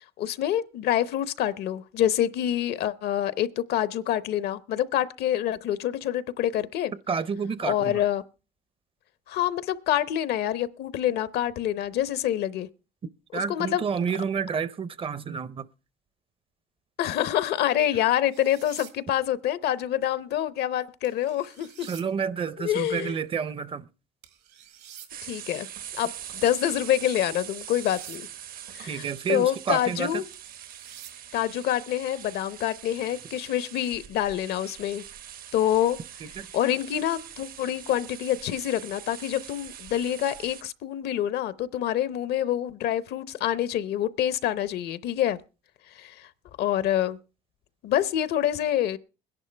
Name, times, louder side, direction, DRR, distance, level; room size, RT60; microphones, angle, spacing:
voice 1, 0.2-6.9 7.6-8.2 9.3-12.7 13.3-13.8 17.0-21.9 22.6-23.2 25.2-25.7 25.9-28.3 28.7-30.2 31.3-35.0 35.5-36.0 36.5-45.4 45.9-46.3 46.6-47.2 47.8-49.0, left 11 dB, 70° left, 0.7 m, -26 dB
voice 2, 7.1-7.9 13.3-15.7 21.8-23.9 28.9-30.1 36.4-36.5, right 6 dB, 35° right, 0.5 m, -29 dB
sound 1, 18.3-18.9 21.0-22.1 24.2-25.1 27.4-28.2 30.3-31.1, right 10 dB, 80° right, 1.8 m, -48 dB
sound 2, 25.1-40.6, right 10 dB, 60° right, 0.8 m, -43 dB
21.0 x 11.0 x 3.3 m
cardioid pair, 110°, 17 cm